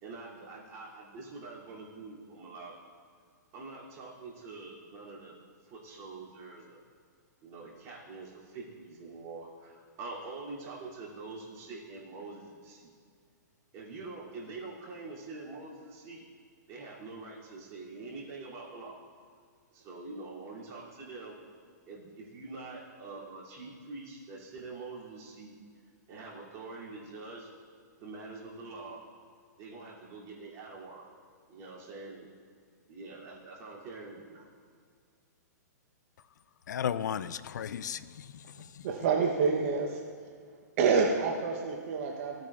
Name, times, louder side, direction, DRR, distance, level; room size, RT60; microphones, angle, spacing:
voice 1, 0.0-2.7 3.5-6.8 7.4-12.9 13.7-16.2 16.7-19.0 19.7-21.4 21.9-25.6 26.1-27.5 28.0-29.0 29.6-31.1 31.5-32.3 32.9-34.5, right 3 dB, 30° right, 2.9 m, -45 dB
voice 2, 36.7-38.7, left 8 dB, 75° left, 0.4 m, -35 dB
voice 3, 38.8-40.0 40.8-42.5, right 5 dB, 50° right, 0.9 m, -27 dB
16.0 x 8.5 x 2.5 m
hypercardioid pair, 135°, 10 cm